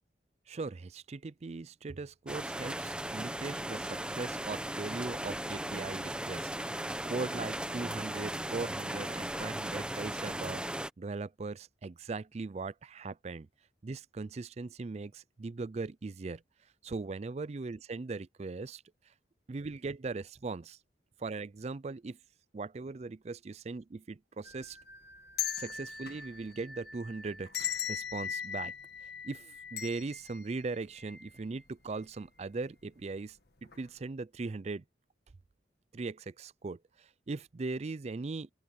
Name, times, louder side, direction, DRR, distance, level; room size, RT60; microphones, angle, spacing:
voice 1, 0.5-6.5 7.0-10.6 11.0-13.5 13.8-16.4 16.8-18.8 19.5-20.8 21.2-22.2 22.5-24.8 25.6-28.7 29.2-34.8 35.9-38.5, right 3 dB, 35° right, 0.4 m, -39 dB
sound 1, 2.3-10.9, right 1 dB, 5° right, 0.9 m, -37 dB
sound 2, 24.4-31.6 32.0-32.1 33.0-33.3 33.6-33.8, left 8 dB, 60° left, 1.7 m, -40 dB
open air
head